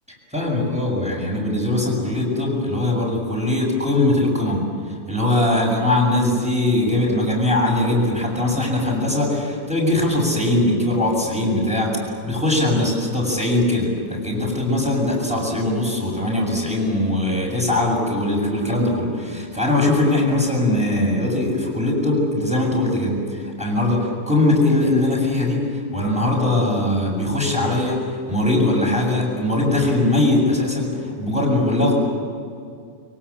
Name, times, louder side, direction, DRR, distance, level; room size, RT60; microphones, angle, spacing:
voice 1, 0.3-4.7 5.1-31.9, left 1 dB, 5° right, -1 dB, 7.2 m, -21 dB
24.5 x 23.5 x 8.7 m, 2.3 s
omnidirectional pair, 1.7 m